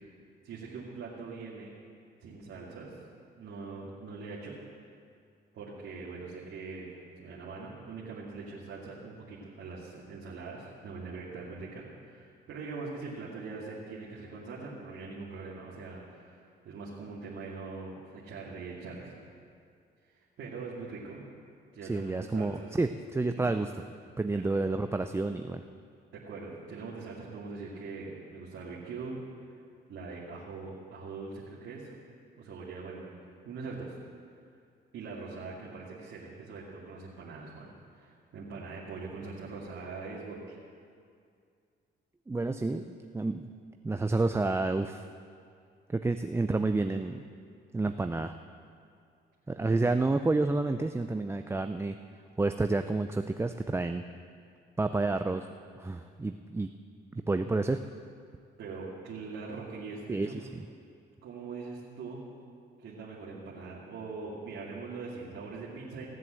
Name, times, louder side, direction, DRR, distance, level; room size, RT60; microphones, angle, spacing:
voice 1, 0.4-1.7 2.2-2.9 3.3-4.5 5.5-6.9 7.2-19.1 20.1-21.2 21.7-22.7 23.3-23.5 26.1-29.2 29.9-31.9 32.4-33.0 33.4-33.9 34.9-40.6 49.6-49.8 58.6-60.4 61.2-62.2 62.8-66.1, right 4 dB, 75° right, -6 dB, 2.4 m, -42 dB
voice 2, 21.9-23.7 24.2-25.6 42.3-42.9 43.1-43.5 43.8-45.1 45.9-47.2 47.7-48.3 49.5-52.0 52.4-54.0 54.8-55.4 55.8-56.7 57.3-57.8 60.1-60.3, right 3 dB, 15° right, 8 dB, 0.4 m, -29 dB
17.0 x 7.7 x 7.6 m, 2.3 s
cardioid pair, 90°, 20 cm